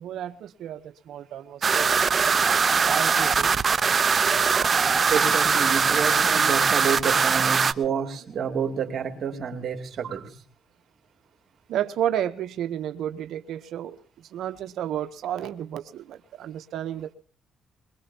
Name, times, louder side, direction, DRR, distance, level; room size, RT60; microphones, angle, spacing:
voice 1, 0.0-2.0 2.9-3.6 11.7-14.0 14.3-17.1, right 10 dB, 80° right, 0.9 m, -31 dB
sound 1, 1.6-7.7, right 5 dB, 40° right, 0.8 m, -21 dB
voice 2, 4.2-10.4, right 6 dB, 60° right, 2.8 m, -29 dB
22.5 x 22.0 x 2.9 m
cardioid pair, 90°, 0 cm